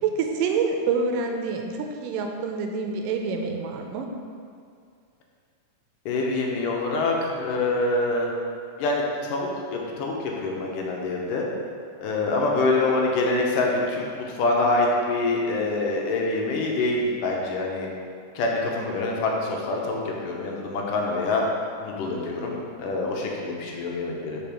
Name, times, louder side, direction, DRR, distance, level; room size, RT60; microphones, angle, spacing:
voice 1, 0.0-4.1, right 5 dB, 90° right, 3 dB, 2.3 m, -27 dB
voice 2, 6.1-8.3 8.8-11.5 12.0-17.9 18.4-21.4 21.8-24.4, left 2 dB, 80° left, -1 dB, 2.4 m, -25 dB
5.2 x 5.0 x 6.0 m, 2.2 s
omnidirectional pair, 3.8 m